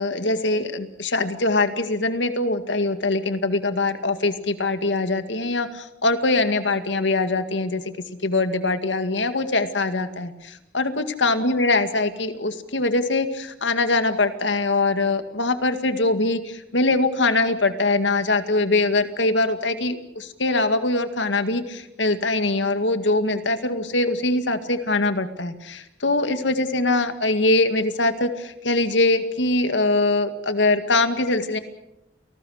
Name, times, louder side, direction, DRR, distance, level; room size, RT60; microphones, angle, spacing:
voice 1, 0.0-7.8 8.2-31.6, left 2 dB, 80° left, 9 dB, 2.1 m, -22 dB
29.0 x 19.0 x 6.5 m, 0.87 s
head